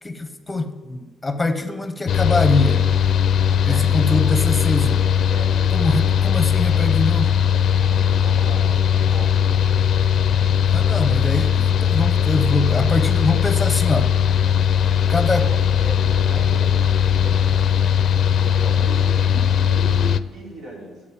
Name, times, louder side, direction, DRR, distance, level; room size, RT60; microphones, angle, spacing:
voice 1, 0.0-2.8 3.7-5.0 5.7-7.4 10.7-14.1 15.1-15.5, left 2 dB, 15° left, 8 dB, 0.9 m, -23 dB
Mechanical fan, 2.1-20.2, left 8 dB, 65° left, 0.4 m, -19 dB
voice 2, 3.4-4.3 5.1-6.1 7.6-9.4 15.1-17.9 18.2-21.0, right 1 dB, 75° right, -4 dB, 4.5 m, -38 dB
9.4 x 7.4 x 8.7 m, 1.4 s
cardioid pair, 90°, 0 cm